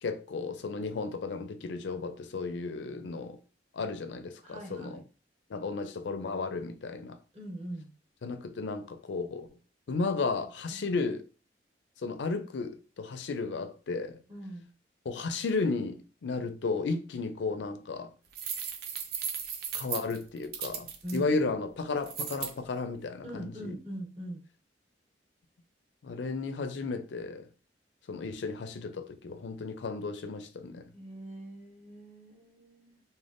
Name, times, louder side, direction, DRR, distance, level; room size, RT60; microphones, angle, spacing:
voice 1, 0.0-3.4 3.7-5.0 5.5-7.2 8.2-9.5 9.9-11.2 12.0-14.2 15.1-18.1 19.7-23.7 26.0-27.5 28.1-30.8, left 4 dB, 75° left, 0.4 m, -34 dB
voice 2, 4.4-5.0 7.3-7.9 10.7-10.8 14.3-14.7 21.0-21.5 23.2-24.4 30.9-33.0, right 1 dB, 35° right, 1.2 m, -41 dB
Keys jingling, 18.3-21.2 22.0-22.5, right 7 dB, 55° right, 0.5 m, -36 dB
3.3 x 2.2 x 2.5 m
head